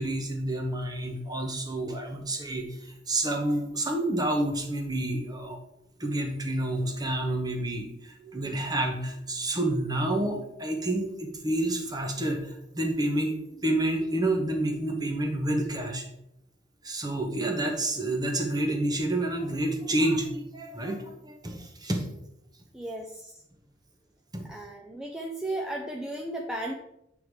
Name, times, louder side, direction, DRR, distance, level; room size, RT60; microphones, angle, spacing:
voice 1, 0.0-5.6 6.0-16.0 16.8-22.0 24.3-24.5, right 1 dB, 20° right, 3 dB, 1.0 m, -29 dB
voice 2, 22.7-23.3 24.5-26.7, right 1 dB, 5° right, 0 dB, 0.5 m, -35 dB
8.2 x 3.6 x 4.7 m, 0.83 s
head